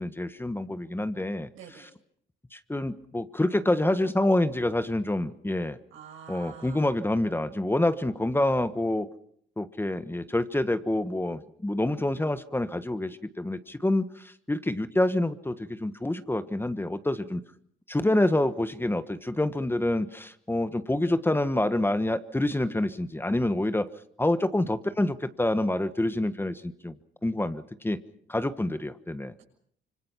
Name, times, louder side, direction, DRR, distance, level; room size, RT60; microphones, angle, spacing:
voice 1, 0.0-1.9 2.5-5.8 6.3-9.1 9.6-17.4 17.9-23.9 24.2-27.0 27.2-28.0 28.3-29.3, left 1 dB, 10° left, 11 dB, 1.4 m, -27 dB
voice 2, 1.5-1.9 5.9-6.8, right 7 dB, 85° right, 2 dB, 7.0 m, -46 dB
26.0 x 25.0 x 5.8 m, 0.64 s
cardioid pair, 90°, 20 cm